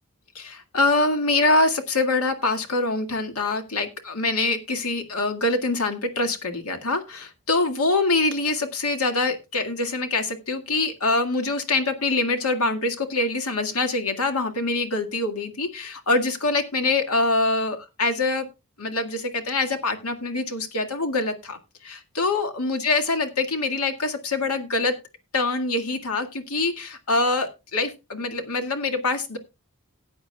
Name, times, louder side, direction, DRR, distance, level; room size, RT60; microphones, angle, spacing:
voice 1, 0.4-18.5 18.8-25.0 25.3-29.4, left 2 dB, 85° left, 6 dB, 2.0 m, -24 dB
18.5 x 8.7 x 2.3 m, 0.27 s
head